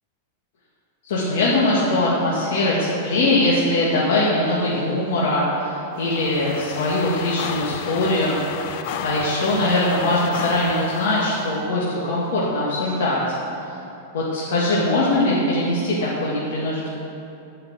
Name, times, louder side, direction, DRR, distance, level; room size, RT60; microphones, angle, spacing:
voice 1, 1.0-8.4 8.6-8.7 9.0-13.8 14.1-16.9, left 1 dB, 75° left, -6 dB, 2.1 m, -21 dB
sound 1, 5.9-11.6, left 8 dB, 50° left, 0.6 m, -33 dB
10.5 x 5.7 x 8.0 m, 2.7 s
supercardioid pair, 155°, 0 cm